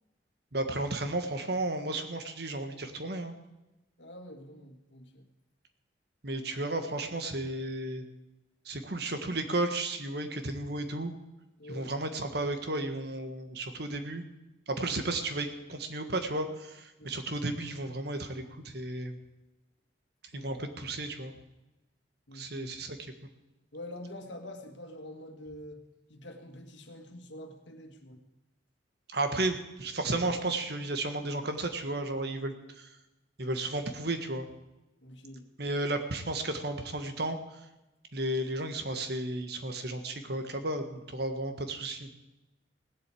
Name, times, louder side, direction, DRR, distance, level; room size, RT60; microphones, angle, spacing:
voice 1, 0.5-3.3 6.2-8.0 8.6-11.1 11.7-14.2 14.7-19.2 20.3-21.3 22.3-23.0 29.1-32.9 33.4-34.5 35.6-37.4 38.1-42.1, right 2 dB, 55° right, 7 dB, 1.6 m, -33 dB
voice 2, 4.0-5.3 11.6-11.9 17.0-17.1 20.3-20.5 22.3-22.7 23.7-25.8 26.1-28.2 35.0-35.4, left 1 dB, 70° left, 4 dB, 1.9 m, -46 dB
17.5 x 7.9 x 8.5 m, 1.0 s
head